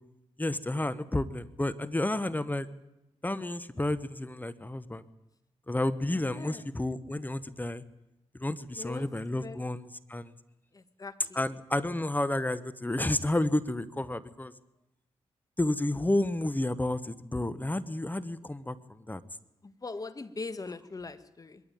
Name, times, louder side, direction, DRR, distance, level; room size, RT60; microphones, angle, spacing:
voice 1, 0.4-2.7 3.2-5.0 5.7-7.8 8.4-10.3 11.3-14.5 15.6-19.2, left 1 dB, 15° left, 15 dB, 1.1 m, -31 dB
voice 2, 6.2-6.7 8.8-9.1 9.4-9.6 10.7-11.4 19.6-21.6, left 3 dB, 35° left, 12 dB, 1.6 m, -41 dB
22.0 x 13.5 x 9.1 m, 0.94 s
cardioid pair, 60°, 11 cm